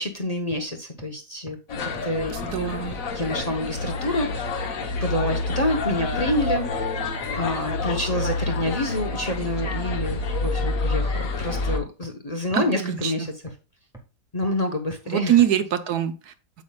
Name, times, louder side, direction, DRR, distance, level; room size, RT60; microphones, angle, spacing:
voice 1, 0.0-2.3 3.1-4.6 5.0-6.9 7.3-13.3 14.3-15.3, left 1 dB, 30° left, 3 dB, 0.9 m, -28 dB
sound 1, 0.5-0.6 1.0-1.1 1.5-1.6 1.9-2.0 2.4-2.5 2.9-3.0 3.4-3.5 3.9-4.0 4.3-4.4 4.8-4.9 5.3-5.4 5.8-5.9 6.3-6.4 6.7-6.8 7.2-7.3 7.7-7.8 8.2-8.3 8.7-8.8 9.1-9.2 9.6-9.7 10.1-10.2 10.6-10.7 11.1-11.2 11.5-11.6 12.0-12.1 12.5-12.6 13.0-13.1 13.5-13.6 13.9-14.0 14.4-14.5 14.9-15.0 15.4-15.5, right 2 dB, ahead, 1.3 m, -42 dB
sound 2, 1.7-11.8, left 3 dB, 55° left, 1.4 m, -28 dB
voice 2, 2.3-3.0 12.5-13.3 15.1-16.3, right 10 dB, 70° right, 9 dB, 1.3 m, -24 dB
8.5 x 8.0 x 2.3 m, 0.32 s
omnidirectional pair, 1.8 m